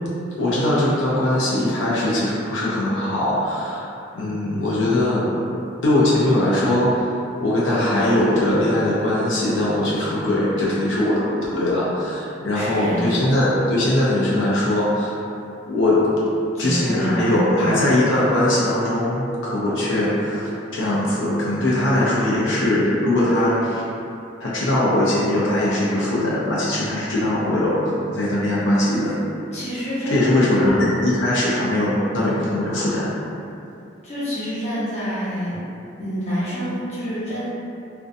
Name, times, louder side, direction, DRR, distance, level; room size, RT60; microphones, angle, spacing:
voice 1, 0.4-5.3 5.8-7.1 7.4-11.2 11.5-15.1 15.7-16.1 16.6-23.8 24.4-29.1 30.1-33.1, left 1 dB, 85° left, -7 dB, 0.5 m, -20 dB
voice 2, 12.5-13.2 16.5-18.0 29.5-30.3 30.6-30.9 34.0-35.6 36.0-37.5, equal, 35° left, -11 dB, 0.8 m, -27 dB
2.5 x 2.1 x 2.5 m, 2.6 s
head